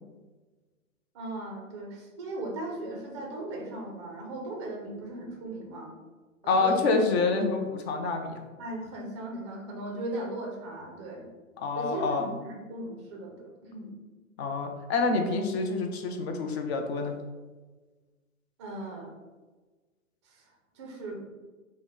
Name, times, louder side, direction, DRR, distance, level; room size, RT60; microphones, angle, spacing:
voice 1, 1.1-5.9 6.4-6.9 8.6-11.3 11.8-13.9 18.6-19.1 20.2-21.2, right 1 dB, 25° right, 1 dB, 0.3 m, -38 dB
voice 2, 6.5-8.4 11.6-12.3 14.4-17.1, left 3 dB, 50° left, 4 dB, 0.5 m, -27 dB
2.9 x 2.1 x 3.8 m, 1.3 s
hypercardioid pair, 125°, 42 cm